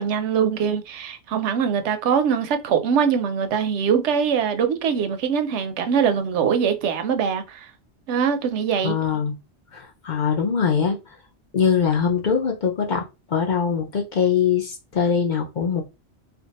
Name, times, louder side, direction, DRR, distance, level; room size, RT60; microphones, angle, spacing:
voice 1, 0.0-7.7 8.1-9.0, right 7 dB, 80° right, 0.9 m, -22 dB
voice 2, 8.8-9.3 9.7-11.0 11.5-15.8, left 6 dB, 50° left, 0.7 m, -22 dB
2.6 x 2.3 x 4.0 m
omnidirectional pair, 1.2 m